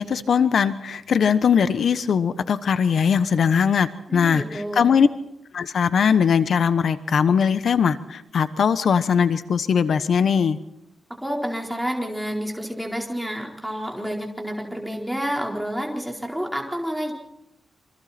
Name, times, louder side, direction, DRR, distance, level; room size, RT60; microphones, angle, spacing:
voice 1, 0.0-5.1 5.5-10.6, left 7 dB, 60° left, 12 dB, 1.0 m, -20 dB
voice 2, 4.1-4.8 11.2-17.1, equal, ahead, 0 dB, 4.3 m, -29 dB
27.5 x 24.5 x 4.4 m, 0.83 s
wide cardioid pair, 125°, 0 cm